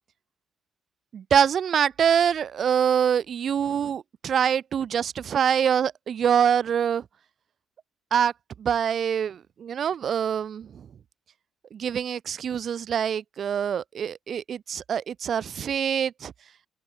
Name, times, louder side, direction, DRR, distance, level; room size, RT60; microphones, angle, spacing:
voice 1, 1.1-7.0 8.1-8.3 8.6-10.9 11.7-16.3, right 8 dB, 55° right, 6.0 m, -25 dB
cardioid pair, 90°, 0 cm